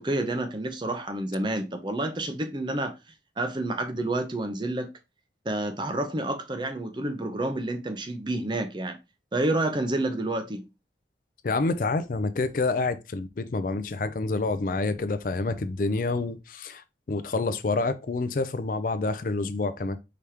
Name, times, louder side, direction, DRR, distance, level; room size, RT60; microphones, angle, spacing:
voice 1, 0.0-2.9 3.4-4.9 5.5-9.0 9.3-10.6, right 1 dB, 25° right, 0.6 m, -29 dB
voice 2, 11.4-20.0, left 3 dB, 50° left, 0.4 m, -28 dB
4.9 x 3.4 x 2.8 m
head